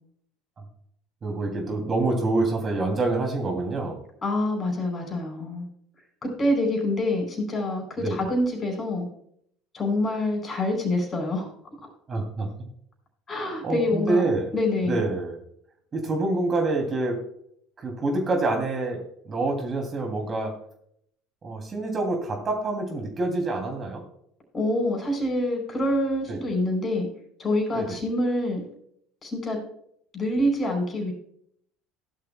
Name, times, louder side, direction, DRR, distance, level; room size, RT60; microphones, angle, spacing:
voice 1, 1.2-4.0 8.0-8.2 12.1-12.5 13.6-14.5 14.8-15.4 15.9-17.2 17.8-20.5 21.4-24.0 26.3-26.4 27.7-28.0, right 2 dB, 35° right, 3 dB, 2.6 m, -26 dB
voice 2, 4.2-5.7 6.2-9.1 9.7-11.5 13.3-15.0 24.5-27.1 27.4-28.7 29.2-29.6 30.1-31.1, left 1 dB, 30° left, 2 dB, 4.4 m, -26 dB
16.0 x 11.5 x 2.2 m, 0.69 s
figure-of-eight pair, 65°, 0 cm